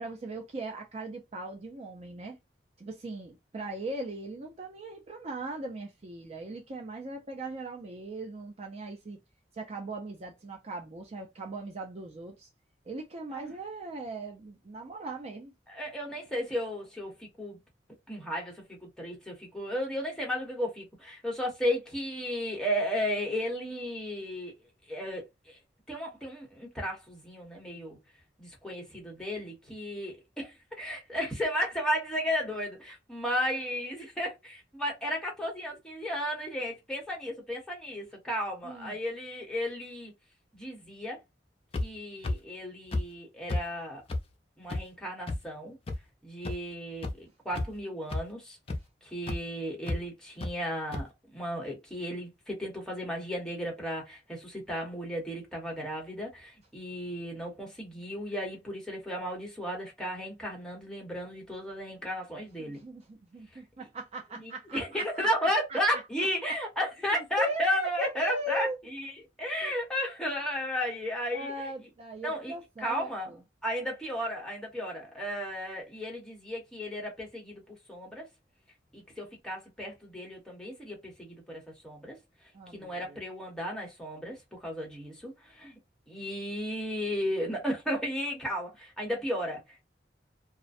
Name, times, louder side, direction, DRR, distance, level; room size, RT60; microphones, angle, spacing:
voice 1, 0.0-2.4 2.8-9.2 9.5-12.5 12.9-15.5 38.6-39.0 62.6-66.3 67.1-68.8 69.6-69.8 71.3-73.4 82.5-83.2, right 1 dB, 35° right, 0.4 m, -39 dB
voice 2, 15.7-17.6 18.1-24.5 24.9-25.6 25.9-28.0 28.4-40.1 40.5-41.2 41.8-44.0 44.6-45.8 46.2-48.6 49.0-62.8 64.4-69.1 69.4-71.7 72.2-72.5 72.8-73.3 73.6-78.3 78.9-82.2 82.7-85.7 86.1-89.8, equal, 5° left, 1.0 m, -34 dB
sound 1, 41.7-41.8 42.2-42.3 42.9-43.0 43.5-43.6 44.1-44.2 44.7-44.8 45.3-45.4 45.9-46.0 46.4-46.5 47.0-47.1 47.5-47.8 48.1-48.2 48.7-48.8 49.3-49.4 49.9-50.0 50.4-50.5 50.9-51.0, left 2 dB, 30° left, 0.4 m, -30 dB
2.4 x 2.1 x 2.5 m
head